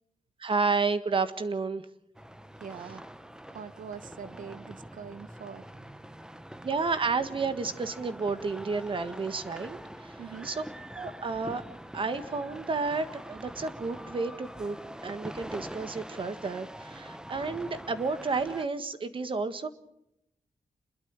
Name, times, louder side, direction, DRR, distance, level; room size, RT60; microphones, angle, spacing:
voice 1, 0.4-1.9 6.6-10.6 10.9-11.6 11.9-14.8 15.0-19.7, right 4 dB, 40° right, 1.6 m, -31 dB
sound 1, 2.1-18.6, right 1 dB, 5° right, 0.8 m, -44 dB
voice 2, 2.6-3.0 3.5-5.6 10.2-10.5, right 7 dB, 90° right, 1.2 m, -43 dB
28.0 x 21.5 x 4.9 m
wide cardioid pair, 175°, 13 cm